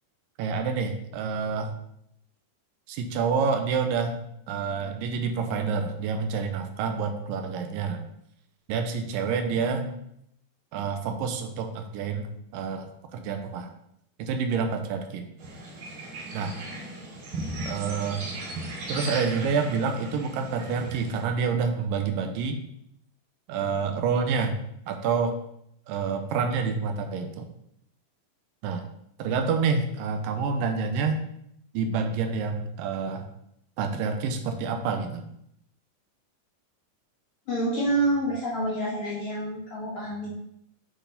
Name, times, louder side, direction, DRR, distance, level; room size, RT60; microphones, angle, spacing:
voice 1, 0.4-1.7 2.9-8.0 8.7-9.9 10.7-12.3 12.5-13.7 14.2-15.3 16.3-16.5 17.7-18.3 18.9-22.6 23.5-24.6 24.9-25.3 25.9-27.5 28.6-28.8 29.2-31.2 31.7-33.2 33.8-35.2, right 5 dB, 85° right, 6 dB, 2.3 m, -28 dB
sound 1, 15.4-21.2, right 2 dB, 70° right, 2.6 m, -37 dB
voice 2, 37.5-40.3, right 1 dB, 55° left, -6 dB, 1.7 m, -27 dB
7.9 x 4.2 x 3.9 m, 0.74 s
omnidirectional pair, 4.0 m